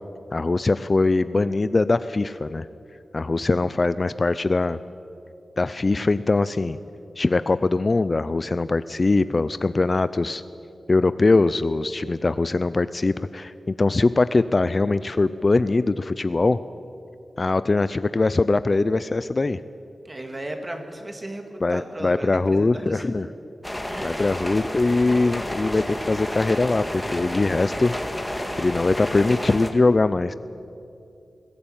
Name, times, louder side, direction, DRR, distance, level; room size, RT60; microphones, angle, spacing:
voice 1, 0.3-2.7 3.1-4.8 5.6-6.8 7.2-10.4 10.9-16.6 17.4-19.6 21.6-23.3 24.0-27.9 28.6-30.3, left 3 dB, 35° left, 14 dB, 0.4 m, -22 dB
voice 2, 20.0-23.2 23.9-24.3, right 1 dB, 20° right, 5 dB, 2.1 m, -36 dB
sound 1, 23.6-29.7, left 1 dB, 10° left, 1.7 m, -30 dB
20.5 x 16.0 x 8.9 m, 2.7 s
wide cardioid pair, 140°, 0 cm